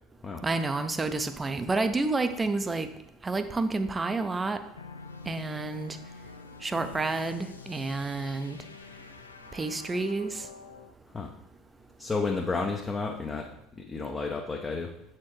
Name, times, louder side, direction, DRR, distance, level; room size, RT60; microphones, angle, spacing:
voice 1, 0.4-2.9 3.2-4.6 5.3-6.0 6.6-8.6 9.5-10.5, right 3 dB, 20° right, 9 dB, 0.6 m, -29 dB
sound 1, 4.8-10.9, left 4 dB, 90° left, 0.4 m, -46 dB
voice 2, 12.0-13.5 13.8-14.9, left 4 dB, 20° left, 1 dB, 0.7 m, -31 dB
7.2 x 4.4 x 3.1 m, 0.84 s
figure-of-eight pair, 70°, 0 cm